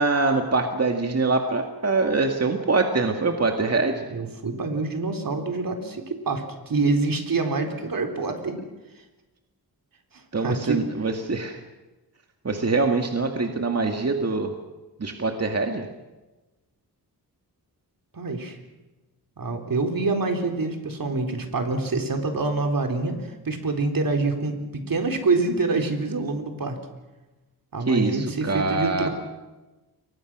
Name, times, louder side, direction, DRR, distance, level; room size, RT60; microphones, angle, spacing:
voice 1, 0.0-4.0 10.3-11.6 12.4-14.5 15.0-15.9 27.9-29.1, right 3 dB, 40° right, 4 dB, 2.1 m, -24 dB
voice 2, 4.1-8.6 10.1-10.9 18.1-18.6 19.4-26.8 27.7-29.1, right 3 dB, 60° right, 4 dB, 3.8 m, -26 dB
29.5 x 23.0 x 6.2 m, 1.1 s
wide cardioid pair, 105°, 38 cm